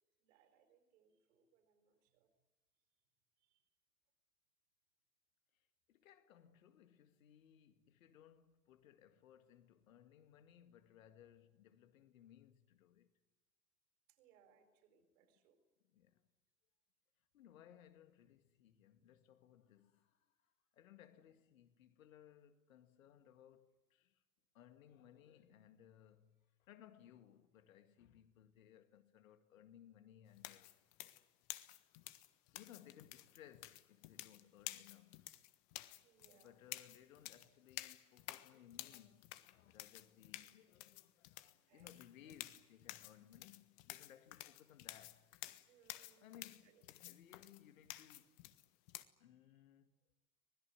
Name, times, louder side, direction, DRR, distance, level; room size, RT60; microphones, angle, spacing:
voice 1, 0.2-2.3 3.4-3.6 14.1-15.6 21.1-21.4 36.0-36.6 41.7-42.0 45.7-46.8, right 7 dB, 55° right, 4.9 m, -72 dB
voice 2, 5.5-13.1 15.8-16.3 17.3-24.2 24.5-30.7 32.0-35.3 36.3-45.3 46.2-48.4 49.2-49.9, left 10 dB, 60° left, 2.1 m, -63 dB
sound 1, 30.4-49.0, left 17 dB, 45° left, 1.4 m, -52 dB
25.5 x 20.0 x 9.5 m
figure-of-eight pair, 85°, 45 cm